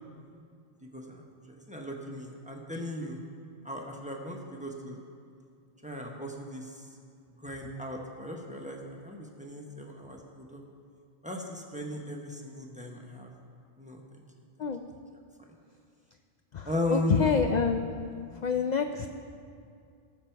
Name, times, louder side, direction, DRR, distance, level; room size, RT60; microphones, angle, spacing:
voice 1, 0.8-3.2 3.6-5.0 5.8-6.9 7.3-10.6 11.2-13.3 13.8-14.2 15.5-15.6 16.6-17.2, left 1 dB, 5° right, 1 dB, 1.0 m, -37 dB
voice 2, 16.5-18.0 18.4-19.1, left 6 dB, 55° left, 6 dB, 0.5 m, -27 dB
18.5 x 7.2 x 4.6 m, 2.4 s
omnidirectional pair, 1.2 m